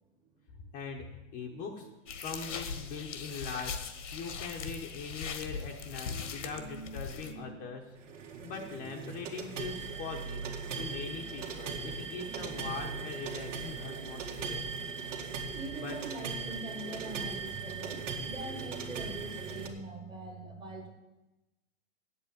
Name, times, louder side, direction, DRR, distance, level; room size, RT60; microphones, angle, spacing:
voice 1, 0.7-1.1 1.3-1.9 2.2-7.8 8.4-14.6 15.7-16.0, left 5 dB, 20° left, 1 dB, 0.9 m, -41 dB
voice 2, 1.5-1.9 2.3-2.5 6.1-7.7 8.1-9.1 9.4-9.5 10.7-11.2 12.0-12.7 15.5-20.9, right 2 dB, 10° right, 4 dB, 1.2 m, -45 dB
sound 1, 2.1-7.3, left 6 dB, 80° left, 1.6 m, -40 dB
sound 2, 7.9-19.7, right 5 dB, 80° right, 2.1 m, -39 dB
8.4 x 8.2 x 8.7 m, 1.0 s
hypercardioid pair, 155°, 37 cm